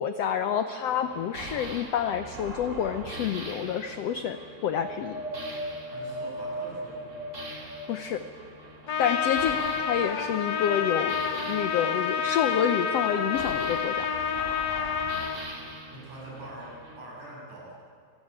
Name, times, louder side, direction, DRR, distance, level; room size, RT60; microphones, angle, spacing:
voice 1, 0.0-4.4 4.6-5.2 7.9-8.2 9.0-11.2 11.4-14.1, left 8 dB, 80° left, 9 dB, 1.4 m, -28 dB
sound 1, 0.8-17.0, right 2 dB, 25° right, 2.6 m, -43 dB
Wind, 4.7-8.2 8.8-9.9 10.6-10.7, right 1 dB, 25° left, 3.6 m, -38 dB
voice 2, 5.9-7.3 9.6-9.7 15.9-17.7, right 1 dB, 55° right, -5 dB, 9.5 m, -44 dB
Trumpet, 8.9-15.4, left 7 dB, 50° left, 1.4 m, -28 dB
27.5 x 20.0 x 8.9 m, 2.3 s
omnidirectional pair, 4.0 m